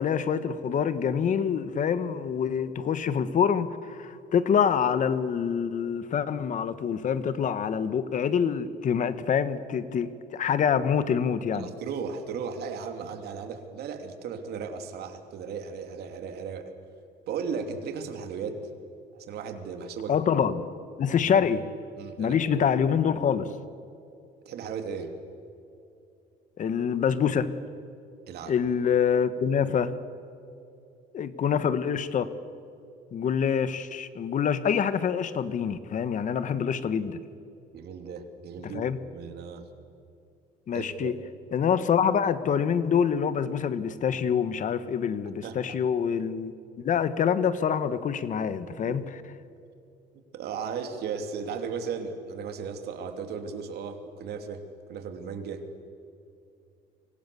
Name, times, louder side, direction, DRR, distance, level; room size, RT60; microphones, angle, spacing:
voice 1, 0.0-11.7 20.1-20.7 21.0-21.6 22.2-23.5 26.6-27.5 28.5-29.9 31.1-32.3 33.1-37.2 38.7-39.0 40.7-41.1 41.5-46.5 46.8-49.0, left 7 dB, 50° left, 1.4 m, -26 dB
voice 2, 11.5-16.7 17.3-18.7 19.1-20.1 21.1-21.4 22.0-22.7 24.4-25.1 28.3-28.5 37.7-39.7 40.7-41.1 45.4-45.6 48.8-49.0 50.1-54.6 54.9-55.7, right 6 dB, 70° right, 3.0 m, -36 dB
30.0 x 25.0 x 7.1 m
cardioid pair, 110°, 17 cm